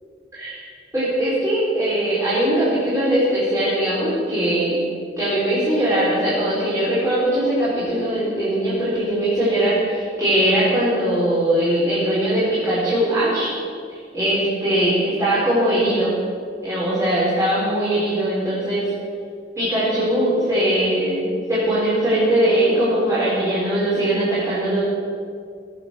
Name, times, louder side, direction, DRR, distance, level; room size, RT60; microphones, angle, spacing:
voice 1, 0.3-0.7 0.9-4.8 5.2-13.5 14.1-16.1 16.6-18.9 19.6-24.8, right 1 dB, 20° right, -12 dB, 4.4 m, -20 dB
18.5 x 7.3 x 7.1 m, 2.3 s
head